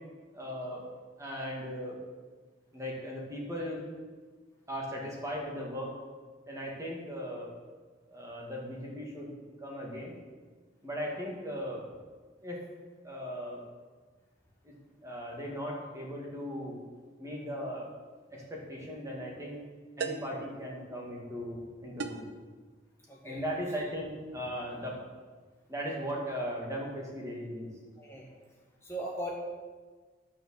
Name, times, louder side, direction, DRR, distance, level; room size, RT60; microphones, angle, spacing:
voice 1, 0.3-0.8 1.2-2.0 2.7-3.8 4.7-5.9 6.5-7.6 8.1-9.3 9.6-10.1 10.8-11.8 12.4-12.6 13.0-13.6 14.6-14.7 15.0-16.8 17.2-17.9 18.3-19.6 20.0-22.3 23.2-25.0 25.7-27.7, equal, 15° right, -2 dB, 2.2 m, -38 dB
sound 1, 18.4-18.6 20.0-20.4 22.0-22.4, right 5 dB, 80° right, 0.8 m, -37 dB
voice 2, 23.1-23.4 28.0-28.3 28.8-29.3, right 1 dB, 15° left, -4 dB, 1.2 m, -38 dB
12.0 x 5.8 x 7.1 m, 1.4 s
head